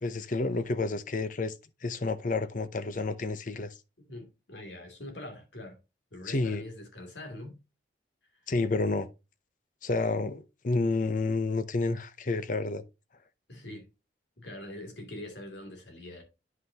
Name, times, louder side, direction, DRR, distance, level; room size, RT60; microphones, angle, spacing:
voice 1, 0.0-1.5 1.8-3.7 6.3-6.6 8.5-9.1 9.8-12.8, left 3 dB, 45° left, 0.7 m, -30 dB
voice 2, 4.1-5.8 6.1-7.6 13.5-13.9 14.4-16.2, left 1 dB, 75° left, 2.7 m, -43 dB
9.7 x 5.5 x 2.8 m
head